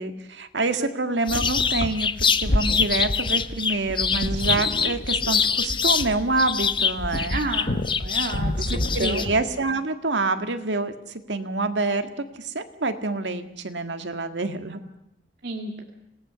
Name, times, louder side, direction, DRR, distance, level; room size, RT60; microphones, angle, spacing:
voice 1, 0.0-7.4 8.6-10.9 11.3-12.1 12.4-14.8, right 3 dB, 90° right, 8 dB, 1.8 m, -27 dB
sound 1, 1.3-9.5, left 1 dB, 50° left, 1.1 m, -30 dB
sound 2, 1.3-6.1 6.4-9.3, left 6 dB, 30° left, 0.9 m, -24 dB
voice 2, 7.3-9.2 15.4-15.8, right 2 dB, 60° right, 2 dB, 2.0 m, -31 dB
26.5 x 18.5 x 6.9 m, 0.83 s
head